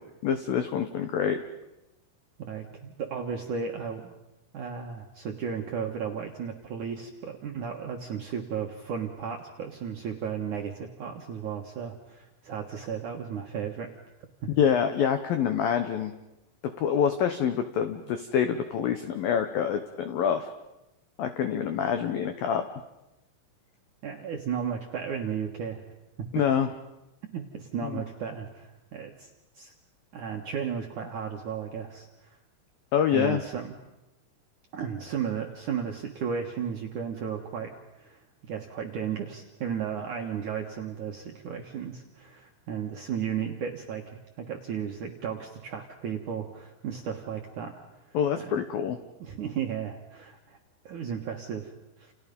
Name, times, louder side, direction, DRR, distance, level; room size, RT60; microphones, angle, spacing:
voice 1, 0.0-1.4 14.6-16.1 16.8-20.5 21.2-22.7 26.3-26.7 27.9-28.0 32.9-33.4 48.1-49.0, left 8 dB, 90° left, 8 dB, 2.0 m, -26 dB
voice 2, 2.4-4.1 4.5-13.9 24.0-25.8 27.3-29.3 29.5-29.7 30.1-32.4 33.1-33.7 34.7-37.7 38.0-47.8 48.1-48.6 49.2-50.6 50.8-51.7 52.0-52.1, right 7 dB, 65° right, 1 dB, 2.0 m, -34 dB
30.0 x 29.5 x 5.4 m, 0.94 s
omnidirectional pair, 5.9 m